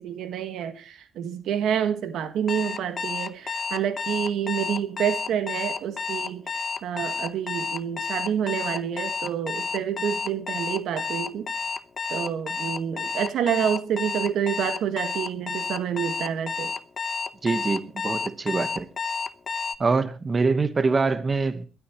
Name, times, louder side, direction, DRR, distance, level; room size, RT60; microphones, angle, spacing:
voice 1, 0.0-11.5 12.1-16.7, right 9 dB, 75° right, 1.6 m, -28 dB
Alarm, 2.5-19.8, left 5 dB, 40° left, 0.9 m, -30 dB
voice 2, 17.4-18.9 19.8-21.7, right 4 dB, 30° right, 1.2 m, -24 dB
21.5 x 12.0 x 3.0 m
cardioid pair, 90°, 0 cm